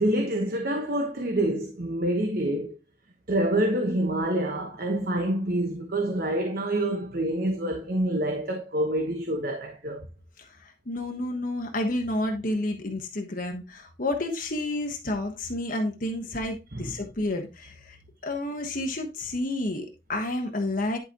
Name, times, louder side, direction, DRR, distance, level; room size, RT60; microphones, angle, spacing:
voice 1, 0.0-2.7 3.3-10.0 16.7-16.9, right 1 dB, 50° right, 1.2 m, -27 dB
voice 2, 10.4-18.0 18.2-21.0, left 1 dB, 45° left, 1.2 m, -30 dB
11.0 x 5.3 x 3.0 m
head